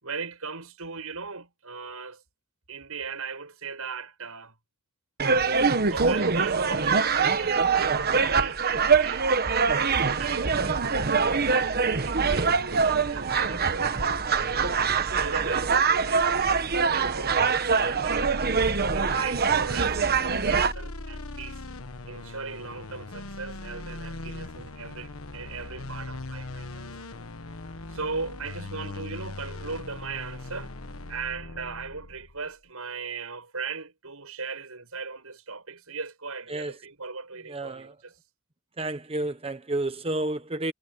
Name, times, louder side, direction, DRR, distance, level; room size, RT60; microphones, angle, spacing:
voice 1, 0.0-2.2 2.7-4.6 5.9-14.7 15.1-21.6 22.1-27.1 27.9-30.8 31.1-38.2 39.2-39.3, right 4 dB, 90° right, 6.6 m, -38 dB
sound 1, 5.2-20.7, right 5 dB, 45° right, 1.2 m, -24 dB
sound 2, 17.9-32.5, left 2 dB, 75° left, 1.4 m, -39 dB
voice 2, 37.5-37.9 38.8-40.7, right 2 dB, 25° right, 1.0 m, -30 dB
head